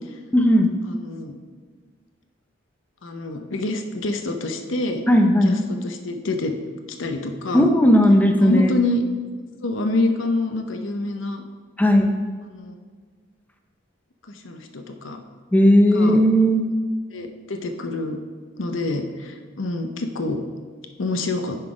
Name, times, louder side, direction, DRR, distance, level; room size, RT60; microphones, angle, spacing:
voice 1, 0.3-0.7 5.1-5.6 7.5-8.7 11.8-12.1 15.5-16.7, equal, 10° left, 3 dB, 0.5 m, -16 dB
voice 2, 0.8-1.3 3.0-5.0 5.4-6.5 7.0-7.7 8.4-9.0 9.6-11.4 12.4-12.7 14.3-15.2 15.9-16.2 17.1-18.2 18.6-20.4 21.0-21.6, left 2 dB, 80° left, 6 dB, 0.7 m, -26 dB
9.7 x 3.9 x 5.0 m, 1.6 s
head